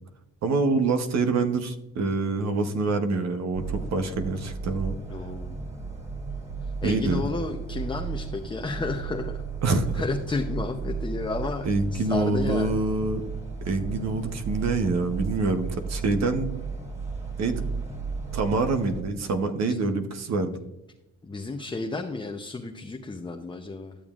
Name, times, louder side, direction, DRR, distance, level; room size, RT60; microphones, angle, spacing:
voice 1, 0.4-5.0 6.8-7.2 9.6-10.0 11.6-13.2 13.6-16.5 17.4-17.6 18.3-20.6, right 3 dB, 60° right, 7 dB, 1.0 m, -26 dB
sound 1, 3.5-19.0, right 5 dB, 20° right, 2.2 m, -34 dB
voice 2, 5.1-5.6 6.6-9.4 9.7-12.8 19.6-19.8 21.2-24.0, left 3 dB, 15° left, 3 dB, 0.7 m, -32 dB
12.5 x 6.9 x 2.4 m, 0.93 s
cardioid pair, 90°, 30 cm